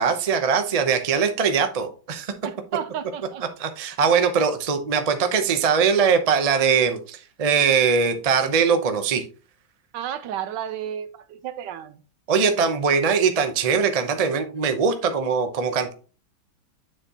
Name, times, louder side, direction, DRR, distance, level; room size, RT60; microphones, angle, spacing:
voice 1, 0.0-2.3 3.6-9.2 12.3-15.9, right 6 dB, 55° right, 0.4 m, -21 dB
voice 2, 2.4-3.4 9.9-12.0, right 10 dB, 75° right, 1.3 m, -32 dB
7.5 x 6.7 x 2.9 m
omnidirectional pair, 2.1 m